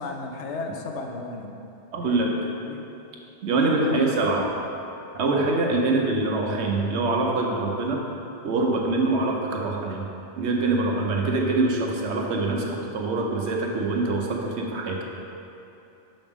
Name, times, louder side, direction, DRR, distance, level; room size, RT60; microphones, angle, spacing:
voice 1, 0.0-1.5 2.0-2.8 3.5-4.1 5.2-5.5, left 3 dB, 75° left, 3 dB, 0.9 m, -34 dB
voice 2, 1.9-2.4 3.4-4.5 5.1-8.0 8.4-10.1 10.4-15.0, right 2 dB, 70° right, 0 dB, 1.0 m, -24 dB
5.9 x 5.2 x 3.6 m, 2.9 s
omnidirectional pair, 1.2 m